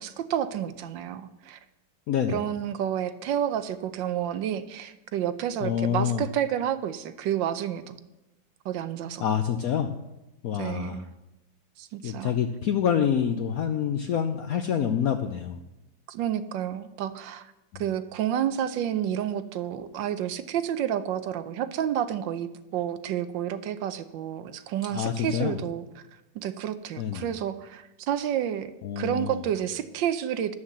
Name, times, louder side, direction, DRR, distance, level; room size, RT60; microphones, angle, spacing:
voice 1, 0.0-1.6 2.3-8.0 8.6-9.2 10.6-11.1 11.8-12.3 16.1-17.5 17.8-26.0 26.3-28.7 29.0-30.5, right 10 dB, 75° right, 12 dB, 1.3 m, -30 dB
voice 2, 2.1-2.4 5.6-6.2 9.2-9.9 10.4-11.0 12.0-15.6 24.9-25.6 27.0-27.3 28.8-29.4, left 8 dB, 70° left, 7 dB, 0.8 m, -27 dB
11.5 x 6.5 x 7.3 m, 0.98 s
omnidirectional pair, 2.2 m